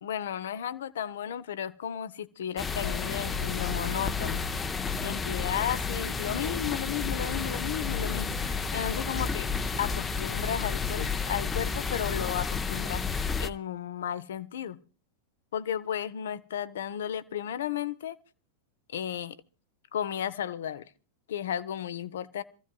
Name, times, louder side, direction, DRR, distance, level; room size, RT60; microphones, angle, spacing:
voice 1, 0.0-4.4 5.0-9.5 9.8-13.0 13.4-14.8 15.5-18.2 18.9-19.4 19.9-20.9 21.3-22.4, left 9 dB, 60° left, 0.6 m, -34 dB
sound 1, 2.6-13.5, left 5 dB, 15° left, 0.7 m, -31 dB
26.5 x 15.0 x 2.3 m
figure-of-eight pair, 90°, 0 cm